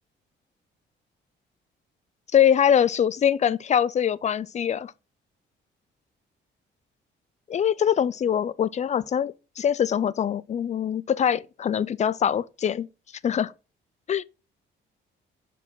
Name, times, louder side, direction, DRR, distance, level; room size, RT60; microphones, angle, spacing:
voice 1, 2.3-4.9 7.5-12.9 13.2-13.5 14.1-14.2, left 9 dB, 35° left, 0.4 m, -23 dB
5.5 x 4.2 x 5.5 m
cardioid pair, 90°, 20 cm